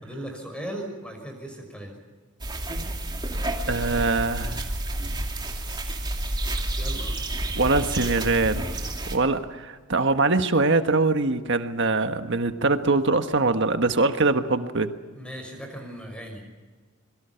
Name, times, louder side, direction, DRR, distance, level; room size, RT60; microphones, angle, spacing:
voice 1, 0.0-1.9 6.8-7.2 15.1-16.4, right 1 dB, 5° left, 4 dB, 5.9 m, -37 dB
sound 1, 2.4-9.2, right 1 dB, 20° right, 2.7 m, -30 dB
voice 2, 3.7-4.6 7.5-8.7 9.1-14.9, right 3 dB, 55° right, 8 dB, 1.5 m, -23 dB
26.0 x 23.0 x 5.9 m, 1.4 s
head